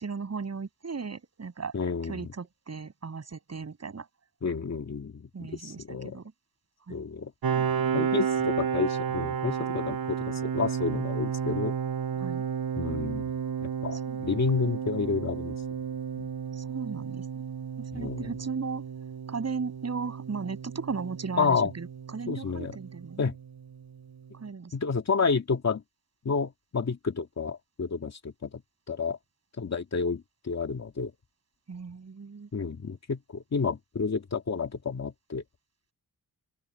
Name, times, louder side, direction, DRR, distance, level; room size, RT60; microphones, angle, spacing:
voice 1, 0.0-1.8 2.0-4.1 5.3-6.3 6.9-7.0 7.6-7.9 12.2-12.4 13.9-14.2 16.5-17.2 17.8-18.8 19.3-23.2 24.3-24.7 31.7-32.5, right 5 dB, 45° right, 7.3 m, -36 dB
voice 2, 1.7-2.3 4.4-6.2 6.9-7.3 7.9-11.7 12.8-13.3 13.6-15.6 16.2-16.3 17.9-18.3 21.4-21.7 22.3-22.8 23.2-23.4 24.7-25.8 26.2-28.5 28.9-29.2 29.6-31.1 32.5-35.4, left 5 dB, 45° left, 2.4 m, -30 dB
Piano, 7.4-22.8, right 7 dB, 75° right, 4.1 m, -32 dB
open air
wide cardioid pair, 140°, 37 cm